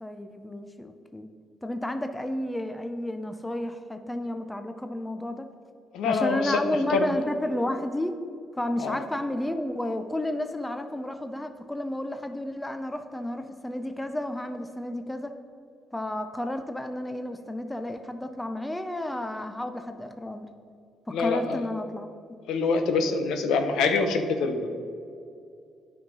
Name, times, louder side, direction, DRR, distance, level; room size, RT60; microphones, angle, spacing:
voice 1, 0.0-1.3 1.6-5.5 6.1-8.2 8.6-15.3 15.9-20.5 21.1-22.1, left 1 dB, 10° left, 8 dB, 0.6 m, -31 dB
voice 2, 5.9-6.6 6.9-7.1 8.8-9.0 21.1-21.6 22.5-24.7, left 4 dB, 85° left, 7 dB, 0.8 m, -25 dB
9.4 x 5.6 x 5.4 m, 2.5 s
cardioid pair, 90°, 0 cm